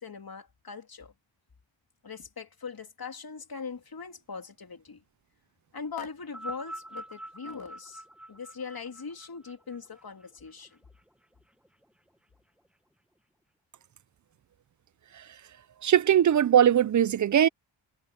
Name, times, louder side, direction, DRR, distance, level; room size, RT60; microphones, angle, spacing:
voice 1, 0.0-1.1 2.0-5.0 5.7-8.0 8.3-10.8, left 5 dB, 50° left, 3.4 m, -41 dB
sound 1, 6.2-10.7 11.6-11.7, right 1 dB, ahead, 1.5 m, -44 dB
voice 2, 15.8-17.5, right 10 dB, 40° right, 0.5 m, -20 dB
cardioid pair, 85°, 46 cm